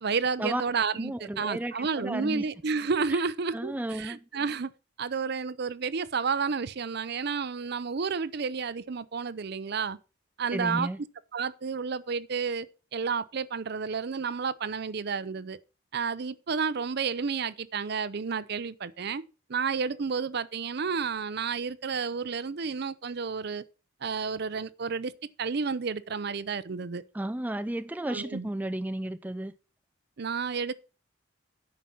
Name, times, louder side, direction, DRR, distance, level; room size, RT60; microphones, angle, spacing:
voice 1, 0.0-4.7 5.0-10.0 10.4-10.9 11.3-12.7 12.9-15.6 15.9-19.2 19.5-23.6 24.0-25.1 25.4-27.0 28.1-28.5 30.2-30.7, right 5 dB, 55° right, 0.6 m, -31 dB
voice 2, 1.0-2.4 3.1-3.2 3.5-4.2 10.5-11.0 27.1-29.5, right 1 dB, 10° right, 0.4 m, -33 dB
9.3 x 5.8 x 6.1 m
head